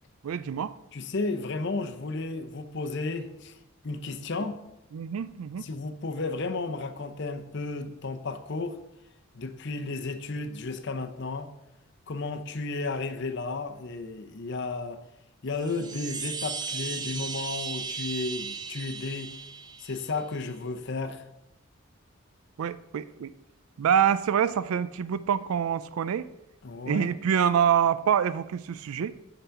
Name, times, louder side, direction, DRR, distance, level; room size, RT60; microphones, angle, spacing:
voice 1, 0.2-0.7 4.9-5.7 22.6-23.3 23.8-26.3 26.9-29.1, right 8 dB, 80° right, 0.4 m, -26 dB
voice 2, 0.9-3.5 3.8-4.6 5.6-8.8 9.3-11.5 12.1-15.0 15.4-19.3 19.8-21.2 26.6-27.1, left 3 dB, 55° left, 0.7 m, -33 dB
Chime, 15.5-20.2, right 5 dB, 20° right, 0.6 m, -36 dB
10.0 x 3.9 x 6.8 m
head